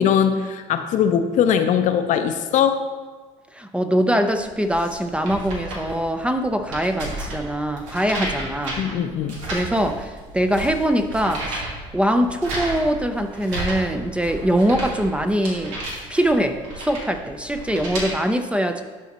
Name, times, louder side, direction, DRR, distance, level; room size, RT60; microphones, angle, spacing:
voice 1, 0.0-2.8 8.8-9.4, left 8 dB, 55° left, 8 dB, 0.6 m, -20 dB
voice 2, 3.5-8.8 9.5-11.7 11.9-15.8 16.1-18.8, equal, 5° right, 7 dB, 0.5 m, -22 dB
sound 1, 4.4-18.1, right 2 dB, 90° right, 1.6 m, -33 dB
11.0 x 4.1 x 2.9 m, 1.4 s
supercardioid pair, 85°, 16 cm